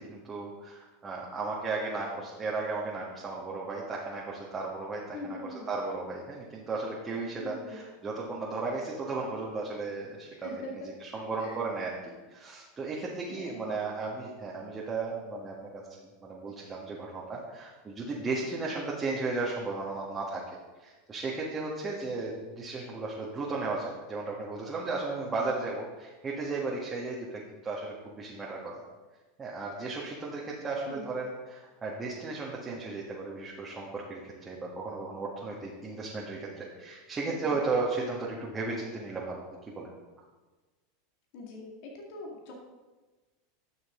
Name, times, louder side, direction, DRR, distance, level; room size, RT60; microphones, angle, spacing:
voice 1, 0.0-5.4 5.7-10.5 11.0-15.8 16.2-27.3 27.6-28.8 29.4-39.4 39.7-39.9, right 3 dB, 25° right, -4 dB, 1.8 m, -35 dB
voice 2, 5.1-5.7 7.4-7.8 10.3-10.9 11.4-11.6 13.3-13.9 25.2-25.5 30.9-31.1 37.2-37.6 41.3-42.5, left 2 dB, 60° left, 0 dB, 2.1 m, -43 dB
11.0 x 6.5 x 3.8 m, 1.2 s
hypercardioid pair, 90°, 0 cm